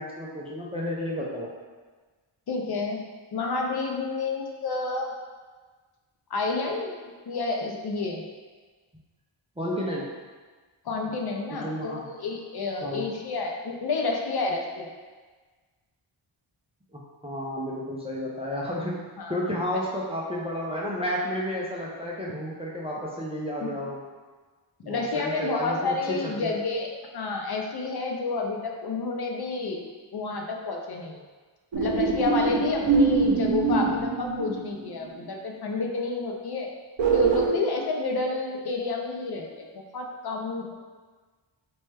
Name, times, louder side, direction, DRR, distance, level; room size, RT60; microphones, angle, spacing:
voice 1, 0.0-1.5 9.6-10.0 11.5-12.1 12.8-13.1 16.9-19.0 19.3-24.0 24.8-26.5, equal, 15° right, -4 dB, 0.4 m, -31 dB
voice 2, 2.5-3.0 3.3-5.1 6.3-6.9 7.3-8.2 10.9-14.9 19.2-19.3 19.7-19.8 23.6-23.7 24.8-29.8 30.1-31.2 31.8-36.7 37.1-39.7 39.9-40.7, left 3 dB, 50° left, 1 dB, 0.5 m, -29 dB
sound 1, 31.7-34.9 37.0-37.5, right 4 dB, 65° right, 0.7 m, -23 dB
4.1 x 2.2 x 3.2 m, 1.4 s
wide cardioid pair, 115°, 50 cm